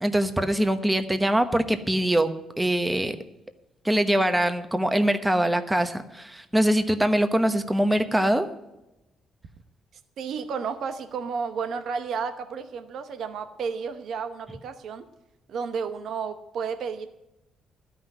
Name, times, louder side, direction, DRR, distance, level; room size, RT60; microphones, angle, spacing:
voice 1, 0.0-2.3 2.6-3.2 3.8-8.5, right 1 dB, 10° right, 9 dB, 1.1 m, -23 dB
voice 2, 10.2-15.1 15.5-17.1, right 6 dB, 70° right, 9 dB, 0.9 m, -32 dB
13.0 x 6.0 x 9.4 m, 0.93 s
cardioid pair, 90°, 0 cm